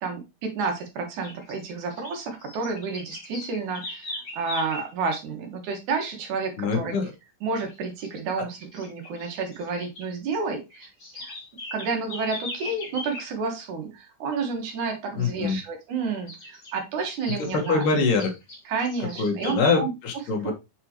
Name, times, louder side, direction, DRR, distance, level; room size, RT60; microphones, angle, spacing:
voice 1, 0.0-6.9 7.4-10.9 11.1-11.3 11.7-17.8 18.7-19.9 20.4-20.5, right 4 dB, 70° right, 4 dB, 2.9 m, -30 dB
sound 1, 0.6-0.8 1.2-4.9 7.5-8.2 8.6-10.1 10.3-13.3 16.3-16.7 17.2-19.8, left 2 dB, 35° left, 1.7 m, -39 dB
voice 2, 6.6-7.1 8.4-8.5 15.2-15.6 17.3-18.3 19.0-20.5, left 4 dB, 85° left, 2 dB, 3.0 m, -24 dB
7.1 x 4.8 x 2.9 m, 0.24 s
omnidirectional pair, 3.6 m